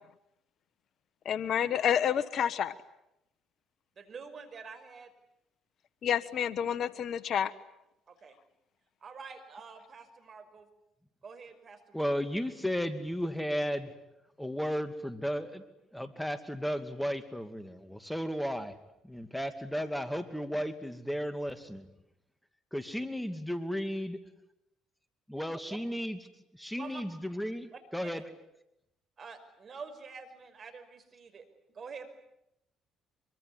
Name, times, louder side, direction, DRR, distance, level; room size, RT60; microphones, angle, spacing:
voice 1, 1.2-2.7 6.0-7.5, left 9 dB, 60° left, 17 dB, 1.3 m, -29 dB
voice 2, 4.0-5.1 8.1-8.4 9.0-10.7 11.2-12.1 19.7-19.8 20.1-20.2 25.5-25.8 26.8-27.0 27.7-28.2 29.2-31.4 31.7-32.1, right 5 dB, 45° right, 9 dB, 5.7 m, -47 dB
voice 3, 11.9-13.9 14.4-15.6 15.9-18.8 19.0-21.9 22.7-24.2 25.3-26.2 26.5-28.2, equal, 5° left, 10 dB, 2.6 m, -34 dB
25.0 x 24.0 x 9.9 m, 0.84 s
hypercardioid pair, 60°, 0 cm